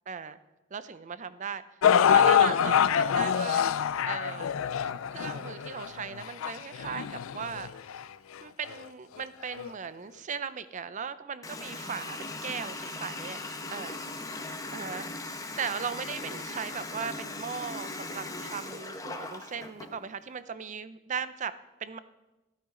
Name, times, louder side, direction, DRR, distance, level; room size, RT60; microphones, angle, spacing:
voice 1, 0.1-0.4 0.7-1.6 2.1-3.6 4.0-4.5 5.1-7.8 8.4-13.4 13.7-14.0 14.7-15.1 15.6-22.0, right 6 dB, 40° right, 14 dB, 0.5 m, -37 dB
sound 1, 1.8-8.0 8.7-8.8 9.6-9.7, left 8 dB, 85° left, 0.4 m, -25 dB
Water tap faucet, 11.4-19.9, left 2 dB, 15° left, 1.0 m, -39 dB
13.5 x 12.0 x 3.8 m, 1.1 s
head